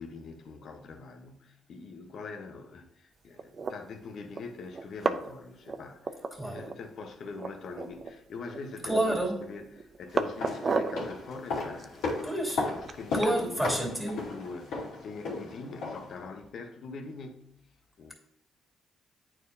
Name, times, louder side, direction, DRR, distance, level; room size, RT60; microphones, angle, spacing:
voice 1, 0.0-12.3 12.7-17.6 18.0-18.1, left 4 dB, 60° left, 6 dB, 1.0 m, -43 dB
sound 1, 3.4-3.7 4.4-4.5 4.7-5.4 5.6-6.7 7.0-7.1 7.4-8.1 8.5-9.3 9.8-11.0 11.5-13.4, right 4 dB, 40° right, 0.5 m, -33 dB
voice 2, 8.8-9.5 12.2-12.6 13.1-14.2, right 1 dB, ahead, -3 dB, 2.6 m, -29 dB
sound 2, 10.2-16.2 16.5-16.6, left 3 dB, 85° left, 2.5 m, -35 dB
9.1 x 4.5 x 2.7 m, 0.80 s
cardioid pair, 90°, 0 cm